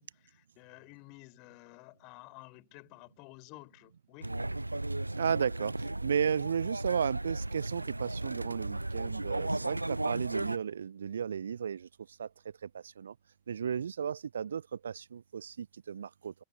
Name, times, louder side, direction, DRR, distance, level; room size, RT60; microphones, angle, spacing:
voice 1, 0.0-4.4, left 30 dB, 45° left, 5.9 m, -53 dB
sound 1, 4.2-10.6, right 2 dB, 85° right, 0.4 m, -35 dB
voice 2, 5.2-13.1 13.5-16.3, right 7 dB, 70° right, 0.8 m, -34 dB
figure-of-eight pair, 90°, 0 cm